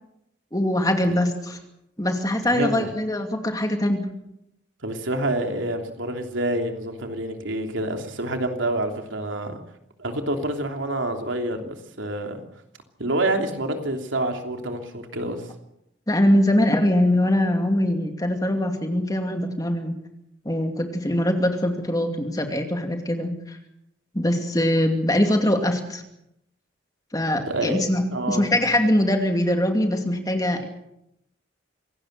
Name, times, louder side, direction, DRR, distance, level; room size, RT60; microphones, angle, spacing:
voice 1, 0.5-1.6 2.0-4.0 16.1-20.0 20.4-23.6 24.1-26.0 27.1-30.7, left 1 dB, 20° left, 5 dB, 2.5 m, -22 dB
voice 2, 2.5-2.9 4.8-9.6 10.0-12.4 13.0-15.5 27.5-27.8 28.1-28.5, right 1 dB, 85° right, 4 dB, 3.1 m, -27 dB
26.0 x 18.0 x 6.7 m, 0.82 s
head